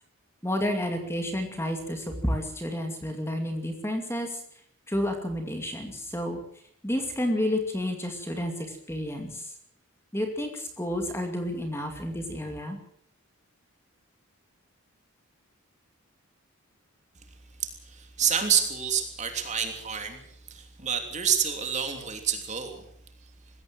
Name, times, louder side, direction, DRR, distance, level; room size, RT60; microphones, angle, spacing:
voice 1, 0.4-4.4 4.9-6.4 6.8-9.5 10.1-12.8, left 1 dB, 10° left, 4 dB, 2.4 m, -30 dB
voice 2, 17.6-20.2 20.5-22.8, right 8 dB, 30° right, 5 dB, 3.2 m, -28 dB
21.5 x 16.0 x 7.9 m, 0.66 s
head